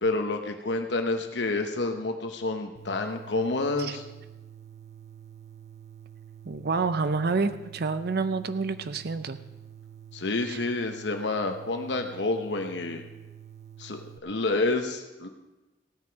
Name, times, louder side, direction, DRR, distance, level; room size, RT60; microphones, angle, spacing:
voice 1, 0.0-4.0 10.1-13.0 13.8-15.3, left 2 dB, 75° left, 5 dB, 1.0 m, -29 dB
sound 1, 2.8-14.2, right 9 dB, 40° right, 1.0 m, -48 dB
voice 2, 6.5-9.4 10.5-10.6, right 4 dB, 60° right, 11 dB, 0.6 m, -28 dB
16.0 x 9.5 x 5.8 m, 1.1 s
head